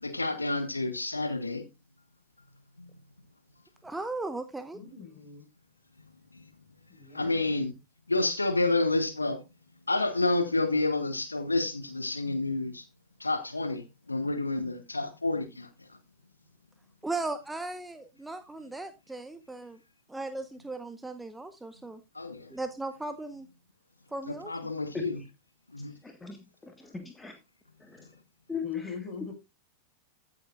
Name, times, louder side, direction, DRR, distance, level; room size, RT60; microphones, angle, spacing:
voice 1, 0.0-1.6 2.8-2.9 7.1-7.7 8.1-9.4 9.9-12.9 13.2-15.7 22.1-22.5 24.3-25.2 25.7-25.9, left 2 dB, 80° left, 1.0 m, -29 dB
voice 2, 3.8-4.8 17.0-19.8 20.1-22.0 22.5-23.5 24.1-24.7, right 2 dB, 5° right, 0.8 m, -37 dB
voice 3, 4.7-5.5 6.9-7.5 28.6-29.3, left 7 dB, 25° left, 6.1 m, -40 dB
voice 4, 26.0-26.4 26.6-27.3 27.9-28.1 28.5-28.9, left 5 dB, 10° left, 1.6 m, -38 dB
15.0 x 8.0 x 2.5 m
figure-of-eight pair, 90°, 0 cm